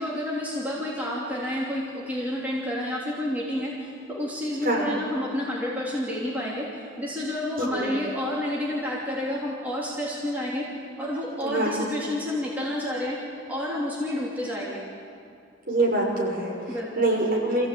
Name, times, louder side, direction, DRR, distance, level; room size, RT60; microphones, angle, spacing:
voice 1, 0.0-10.7 11.0-13.2 13.5-14.8 16.7-17.1, left 1 dB, 10° right, -6 dB, 3.4 m, -30 dB
voice 2, 11.4-11.9 15.7-16.5 17.0-17.7, right 2 dB, 50° right, -3 dB, 6.0 m, -24 dB
26.5 x 16.0 x 8.9 m, 2.4 s
head